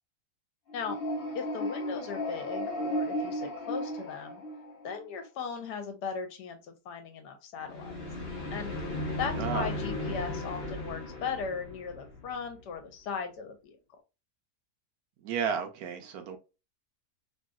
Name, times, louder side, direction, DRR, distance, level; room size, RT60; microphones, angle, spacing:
sound 1, 0.7-5.0 7.6-12.6, left 1 dB, 45° left, 1.1 m, -35 dB
voice 1, 1.3-4.4 4.8-8.0 8.5-8.7 9.2-13.8, left 6 dB, 85° left, 6 dB, 1.3 m, -37 dB
voice 2, 9.4-9.7 15.2-16.4, right 7 dB, 70° right, 6 dB, 1.0 m, -32 dB
3.0 x 2.7 x 2.2 m, 0.29 s
omnidirectional pair, 1.8 m